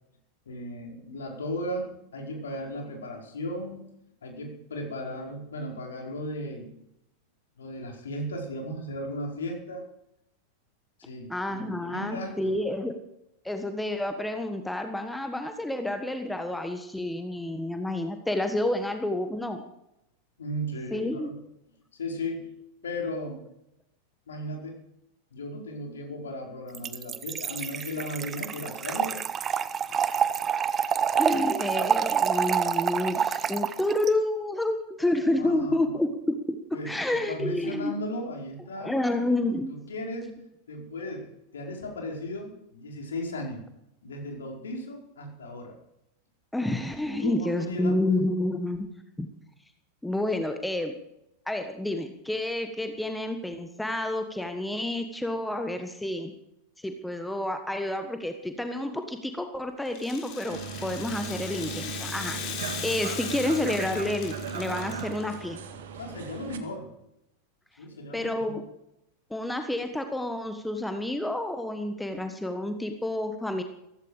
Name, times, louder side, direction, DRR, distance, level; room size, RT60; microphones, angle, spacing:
voice 1, 0.4-3.8 4.2-6.7 7.6-9.9 11.0-12.6 20.4-21.3 22.0-22.5 22.8-23.4 24.3-24.8 25.3-29.2 35.4-35.9 36.7-39.0 39.7-40.3 40.7-43.6 44.0-45.7 47.2-48.0 66.0-66.9 67.8-68.6, left 1 dB, 65° left, 0 dB, 5.1 m, -36 dB
voice 2, 11.3-12.9 13.4-19.6 20.9-21.3 31.2-36.6 36.8-37.9 38.8-39.7 46.5-48.9 49.2-49.3 50.0-50.9 51.5-56.3 56.8-65.6 68.1-68.6 69.3-73.6, left 1 dB, 5° left, 7 dB, 1.4 m, -29 dB
Trickle dribble / Fill (with liquid), 26.7-34.1, right 8 dB, 25° right, 1.0 m, -27 dB
Rattle (instrument), 59.9-65.3, left 8 dB, 40° left, 3.7 m, -38 dB
sound 1, 60.5-66.6, right 6 dB, 60° right, 2.0 m, -37 dB
16.0 x 15.5 x 5.0 m, 0.82 s
figure-of-eight pair, 90°, 0 cm